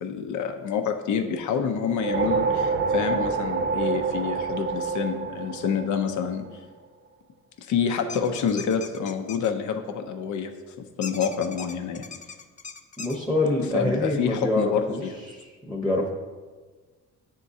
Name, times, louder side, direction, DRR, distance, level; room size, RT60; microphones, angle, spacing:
voice 1, 0.0-6.5 7.6-10.5 10.8-12.1 13.7-15.1, left 7 dB, 75° left, 6 dB, 0.7 m, -27 dB
sound 1, 1.8-6.4, right 5 dB, 35° right, 0.6 m, -27 dB
sound 2, 8.1-9.5 11.0-13.2, left 5 dB, 25° left, 0.4 m, -39 dB
voice 2, 13.0-15.0 15.3-15.4 15.7-16.1, left 2 dB, ahead, 0 dB, 0.8 m, -25 dB
9.4 x 3.7 x 2.7 m, 1.4 s
cardioid pair, 90°, 30 cm